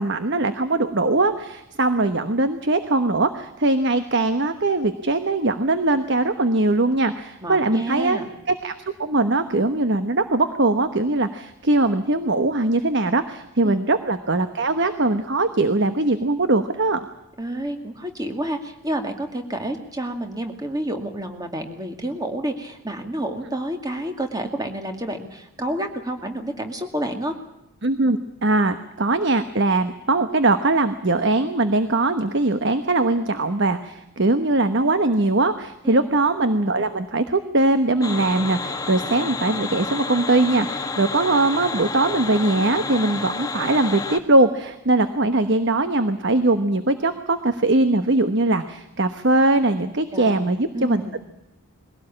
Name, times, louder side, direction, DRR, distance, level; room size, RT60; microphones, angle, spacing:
voice 1, 0.0-8.2 8.5-8.7 9.0-17.1 27.8-51.0, right 2 dB, 50° right, 10 dB, 1.1 m, -21 dB
voice 2, 7.4-8.3 13.6-13.8 17.4-27.3 35.8-36.1 50.1-51.2, right 1 dB, 15° right, 5 dB, 2.3 m, -29 dB
sound 1, 38.0-44.2, left 3 dB, 15° left, 1.0 m, -30 dB
22.0 x 17.0 x 8.8 m, 0.87 s
head